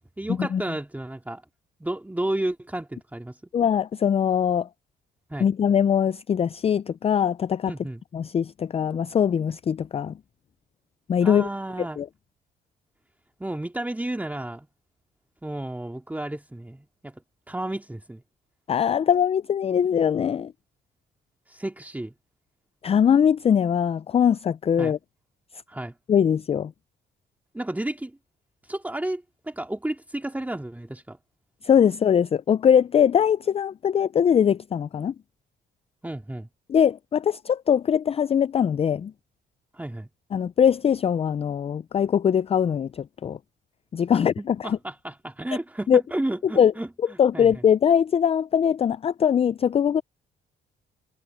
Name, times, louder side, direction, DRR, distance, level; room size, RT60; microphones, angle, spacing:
voice 1, 0.2-1.4 1.8-3.4 5.3-5.5 7.7-8.0 11.2-12.0 13.4-14.7 15.4-17.2 17.5-18.2 21.5-22.1 24.8-25.0 25.7-25.9 27.5-28.2 28.6-31.2 36.0-36.5 39.7-40.1 44.1-47.5, right 1 dB, 10° right, 2.3 m, -32 dB
voice 2, 3.5-4.7 5.4-7.7 8.1-10.2 11.1-11.5 12.0-12.1 18.7-20.5 22.8-25.0 26.1-26.7 31.6-35.1 36.7-39.1 40.3-43.4 43.9-44.8 45.9-46.0 46.6-46.7 47.2-50.0, left 8 dB, 30° left, 0.3 m, -21 dB
cardioid pair, 90°, 20 cm